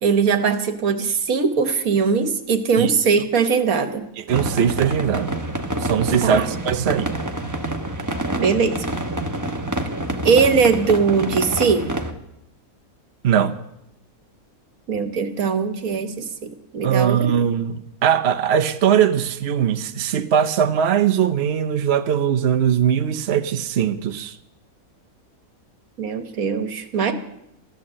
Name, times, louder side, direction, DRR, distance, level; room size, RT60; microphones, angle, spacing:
voice 1, 0.0-4.1 6.2-6.5 8.4-8.8 10.2-11.9 14.9-17.3 26.0-27.1, right 5 dB, 70° right, 1.6 m, -20 dB
voice 2, 4.2-5.3 5.8-7.1 13.2-13.6 16.8-24.4, right 8 dB, 55° right, 0.9 m, -20 dB
sound 1, 4.3-12.1, right 1 dB, 15° right, 1.0 m, -27 dB
14.0 x 11.0 x 7.6 m
omnidirectional pair, 1.6 m